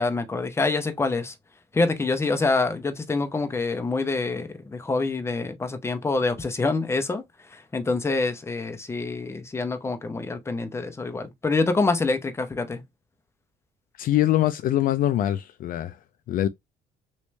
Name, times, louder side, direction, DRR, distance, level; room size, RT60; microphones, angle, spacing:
voice 1, 0.0-1.3 1.7-7.2 7.5-12.8, left 3 dB, 15° left, 0.7 m, -26 dB
voice 2, 14.0-16.0 16.3-16.5, left 13 dB, 55° left, 0.4 m, -23 dB
3.1 x 3.1 x 3.1 m
cardioid pair, 110°, 17 cm